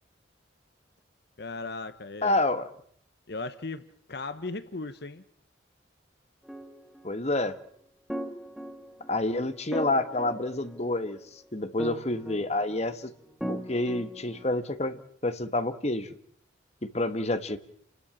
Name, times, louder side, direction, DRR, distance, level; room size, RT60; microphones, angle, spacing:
voice 1, 1.4-2.4 3.3-3.8 4.1-5.2, left 3 dB, 60° left, 11 dB, 1.1 m, -36 dB
voice 2, 2.2-2.7 7.0-7.6 9.1-13.1 13.5-16.1 16.8-17.6, left 2 dB, 35° left, 10 dB, 1.4 m, -28 dB
sound 1, 6.5-7.0 8.1-9.2 9.7-11.1 11.8-12.9 13.4-14.5, right 1 dB, ahead, 2.3 m, -38 dB
29.5 x 12.5 x 8.7 m, 0.65 s
head